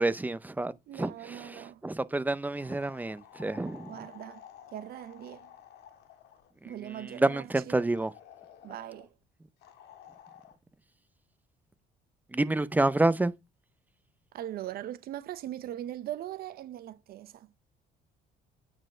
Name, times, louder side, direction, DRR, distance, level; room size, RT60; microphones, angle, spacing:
voice 1, 0.0-3.9 6.6-8.1 12.3-13.3, right 2 dB, 10° right, 0.5 m, -29 dB
voice 2, 0.9-1.8 3.9-4.4 4.7-5.5 6.6-7.8 8.6-9.1 14.3-17.5, right 12 dB, 65° right, 0.7 m, -40 dB
sound 1, 2.6-6.5 7.9-9.1 9.6-10.6, left 9 dB, 80° left, 1.7 m, -53 dB
9.0 x 4.2 x 4.9 m
cardioid pair, 110°, 17 cm